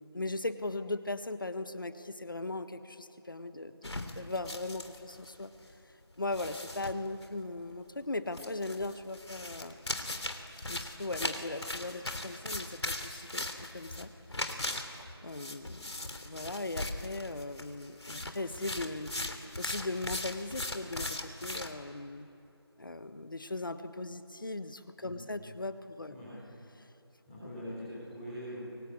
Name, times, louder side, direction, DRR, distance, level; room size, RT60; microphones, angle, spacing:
voice 1, 0.0-5.5 6.2-9.8 10.7-14.1 15.2-15.8 16.2-22.3 22.8-26.2 26.7-26.8, left 2 dB, 50° left, 10 dB, 1.5 m, -38 dB
sound 1, 3.8-5.4 5.7-5.8 6.3-7.2 8.3-21.7, left 2 dB, 85° left, 3.2 m, -39 dB
voice 2, 27.3-28.6, equal, ahead, -20 dB, 4.6 m, -43 dB
27.5 x 24.5 x 8.8 m, 2.9 s
figure-of-eight pair, 180°, 14 cm